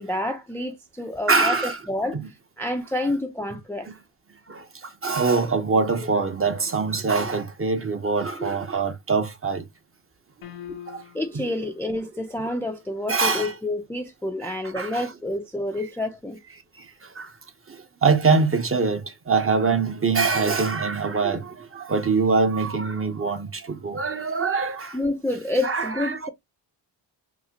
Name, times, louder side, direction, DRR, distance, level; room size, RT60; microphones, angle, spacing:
voice 1, 0.0-2.2 2.6-3.9 10.7-10.8 11.1-16.4 24.9-26.3, left 1 dB, 5° left, 0.4 m, -28 dB
voice 2, 1.3-1.8 2.1-2.3 4.5-9.7 10.9-11.0 11.3-11.5 13.1-13.5 14.7-15.1 16.8-17.3 17.7-25.0 25.6-26.3, right 4 dB, 25° right, 0.7 m, -24 dB
sound 1, 10.4-11.5, left 10 dB, 80° left, 0.9 m, -41 dB
3.9 x 2.1 x 2.8 m
cardioid pair, 65°, 48 cm